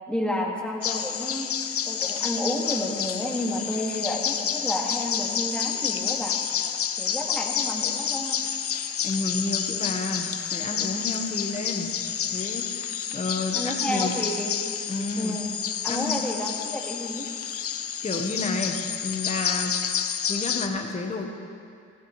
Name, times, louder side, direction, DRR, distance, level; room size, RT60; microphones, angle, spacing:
voice 1, 0.1-1.5 1.8-6.4 7.0-8.4 13.5-14.6 15.2-15.5 15.8-17.3, left 1 dB, 5° left, -2 dB, 2.2 m, -30 dB
sound 1, 0.8-20.7, left 8 dB, 50° left, 0.7 m, -29 dB
voice 2, 9.0-11.9 12.3-14.2 14.9-15.4 15.9-16.2 18.0-19.7 20.3-21.3, left 3 dB, 25° left, 2 dB, 1.4 m, -30 dB
15.0 x 14.5 x 3.3 m, 2.3 s
cardioid pair, 90°, 30 cm